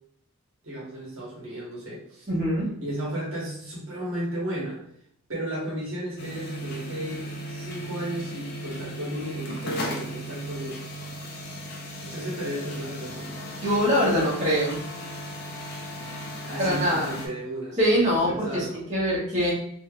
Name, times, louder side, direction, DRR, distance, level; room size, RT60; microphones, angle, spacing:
voice 1, 0.6-2.3 2.8-4.8 5.3-10.9 12.0-13.5 16.4-18.8, right 1 dB, 65° right, -5 dB, 1.1 m, -34 dB
voice 2, 2.3-2.7 13.6-14.8 16.6-17.1 17.8-19.5, equal, 30° right, -7 dB, 1.1 m, -23 dB
sound 1, 6.2-17.3, equal, 45° left, 0.6 m, -36 dB
3.3 x 2.8 x 2.3 m, 0.70 s
head